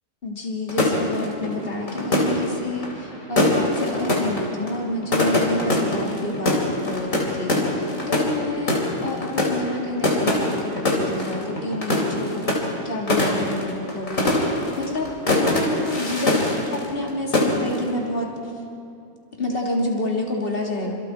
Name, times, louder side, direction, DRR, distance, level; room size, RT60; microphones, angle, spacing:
voice 1, 0.2-8.7 9.0-16.4 16.7-18.6 19.4-20.9, left 1 dB, 35° left, -1 dB, 3.2 m, -29 dB
sound 1, 0.7-17.1 17.3-17.9, left 1 dB, 55° left, 4.0 m, -23 dB
28.5 x 27.0 x 4.7 m, 2.5 s
omnidirectional pair, 1.7 m